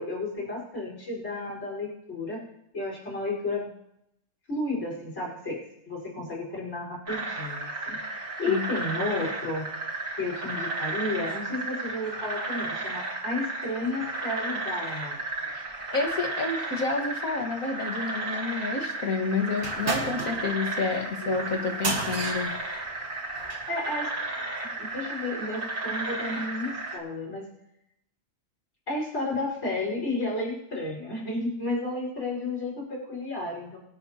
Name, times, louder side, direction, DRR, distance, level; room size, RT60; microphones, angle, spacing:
voice 1, 0.0-2.4 2.7-3.7 4.5-5.6 5.9-9.7 10.2-15.2 23.7-24.1 24.8-27.4 28.9-33.8, left 2 dB, 55° left, -4 dB, 5.5 m, -32 dB
sound 1, 7.1-27.0, right 2 dB, 65° right, 2.6 m, -33 dB
voice 2, 15.5-22.5, left 4 dB, 75° left, 3 dB, 2.1 m, -30 dB
sound 2, 19.6-23.7, right 3 dB, 50° right, 1.9 m, -33 dB
24.5 x 9.0 x 2.9 m, 0.81 s
omnidirectional pair, 1.5 m